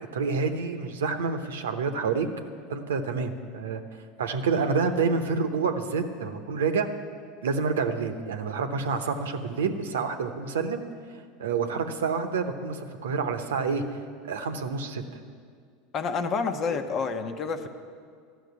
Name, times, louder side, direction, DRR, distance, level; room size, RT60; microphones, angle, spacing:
voice 1, 0.1-2.3 2.7-3.8 4.2-6.9 7.4-10.8 11.4-14.0 14.2-15.0, right 5 dB, 85° right, 7 dB, 0.9 m, -28 dB
voice 2, 15.9-17.7, left 5 dB, 45° left, 7 dB, 1.0 m, -28 dB
12.5 x 6.4 x 9.5 m, 2.1 s
hypercardioid pair, 90°, 0 cm